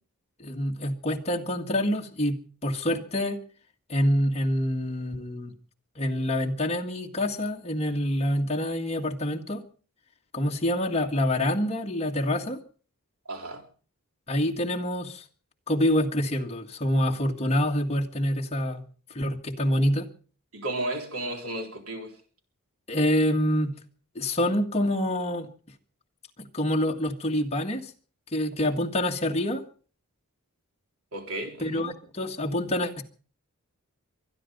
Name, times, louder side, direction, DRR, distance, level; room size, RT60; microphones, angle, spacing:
voice 1, 0.4-3.4 3.9-5.5 6.0-9.6 10.3-12.6 14.3-15.2 15.7-18.8 19.1-20.1 22.9-23.7 24.2-25.5 26.4-27.9 28.3-29.6 31.6-33.0, left 1 dB, 30° left, 1.8 m, -26 dB
voice 2, 13.3-13.6 20.5-22.1 31.1-31.8, right 1 dB, 70° right, 3.8 m, -33 dB
24.0 x 10.5 x 5.4 m
head